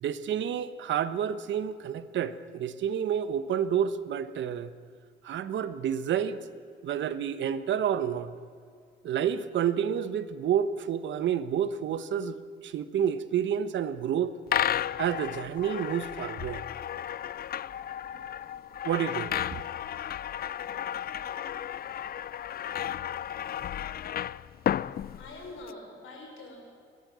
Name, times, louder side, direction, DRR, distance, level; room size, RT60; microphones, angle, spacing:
voice 1, 0.0-4.7 5.2-6.4 6.8-8.3 9.0-12.4 12.6-14.3 15.0-16.6 18.8-19.3, right 9 dB, 70° right, 13 dB, 1.1 m, -29 dB
sound 1, 14.5-25.7, left 10 dB, 50° left, 0.5 m, -33 dB
voice 2, 25.2-26.6, left 2 dB, 80° left, 1 dB, 5.9 m, -44 dB
29.5 x 12.5 x 7.5 m, 2.2 s
cardioid pair, 90°, 20 cm